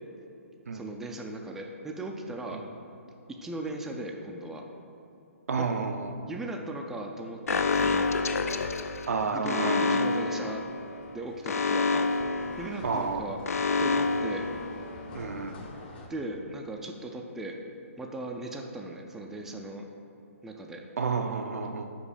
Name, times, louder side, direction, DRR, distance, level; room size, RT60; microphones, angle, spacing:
voice 1, 0.7-2.6 3.3-4.6 5.6-5.7 6.3-8.1 9.3-10.6 11.1-12.2 12.6-13.4 13.8-14.4 16.1-17.5 18.0-19.8 20.4-20.8, right 2 dB, 5° right, 1 dB, 0.3 m, -38 dB
voice 2, 5.5-6.1 9.1-10.1 12.8-13.3 15.1-15.6 21.0-21.9, right 4 dB, 80° right, 7 dB, 0.5 m, -30 dB
Alarm, 7.5-15.2, left 4 dB, 85° left, 0.4 m, -29 dB
sound 1, 9.7-16.1, left 2 dB, 40° left, 0.8 m, -47 dB
5.1 x 4.6 x 5.0 m, 2.7 s
hypercardioid pair, 145°, 8 cm